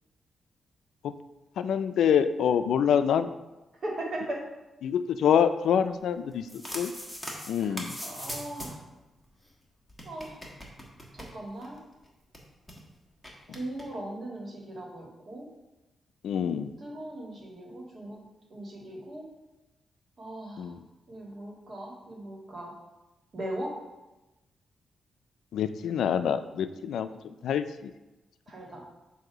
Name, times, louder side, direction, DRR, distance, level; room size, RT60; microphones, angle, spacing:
voice 1, 1.6-3.3 4.8-6.5 6.7-6.9 7.5-7.9 16.2-16.7 20.6-20.8 25.5-27.1 27.4-27.9, left 8 dB, 85° left, 11 dB, 0.3 m, -26 dB
voice 2, 3.8-4.4 7.6-7.8 8.0-8.8 10.0-10.4 11.1-11.8 13.5-15.5 16.8-18.2 18.5-19.3 20.2-20.7 21.1-22.7 23.3-23.7 28.5-28.8, right 1 dB, 45° right, -1 dB, 1.6 m, -38 dB
sound 1, 6.3-8.9 9.2-9.3 9.4-9.5 9.9-11.8 12.0-12.1 12.3-12.8 13.2-13.8, equal, ahead, 1.3 m, -40 dB
7.8 x 2.7 x 6.0 m, 1.0 s
cardioid pair, 110°, 0 cm